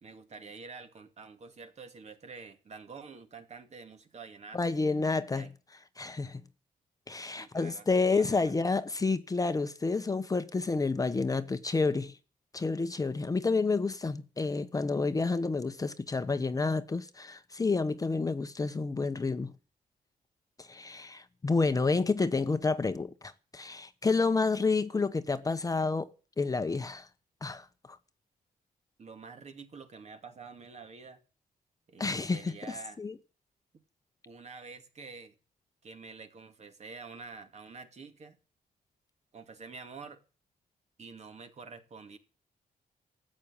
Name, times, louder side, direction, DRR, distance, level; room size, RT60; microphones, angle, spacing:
voice 1, 0.0-4.6 5.3-5.5 7.3-8.5 29.0-31.2 31.9-33.0 34.3-35.4 35.8-38.4 39.3-40.2 41.0-42.2, right 4 dB, 45° right, 2.4 m, -47 dB
voice 2, 4.5-5.5 6.0-6.4 7.1-12.2 12.5-19.5 20.6-26.1 26.4-27.1 27.4-28.0 32.0-32.6 33.0-33.1, left 4 dB, 20° left, 1.0 m, -29 dB
14.5 x 8.6 x 8.6 m
cardioid pair, 125°, 16 cm